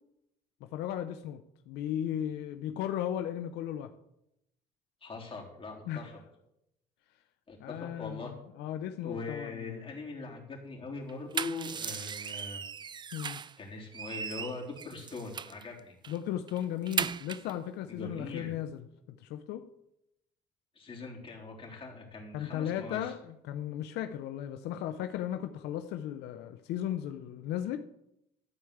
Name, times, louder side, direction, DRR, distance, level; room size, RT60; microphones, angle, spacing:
voice 1, 0.7-3.9 5.9-6.1 7.6-9.9 13.1-13.4 16.1-19.7 22.3-27.8, left 11 dB, 85° left, 8 dB, 0.7 m, -36 dB
voice 2, 5.0-6.2 7.5-8.3 9.0-12.6 13.6-15.9 17.9-18.5 20.7-23.1, left 3 dB, 30° left, -2 dB, 3.6 m, -41 dB
sound 1, 11.1-13.6 13.9-15.6 16.0-16.2 16.5-17.5, right 7 dB, 25° right, 0.4 m, -37 dB
13.0 x 4.8 x 7.9 m, 0.82 s
cardioid pair, 110°, 17 cm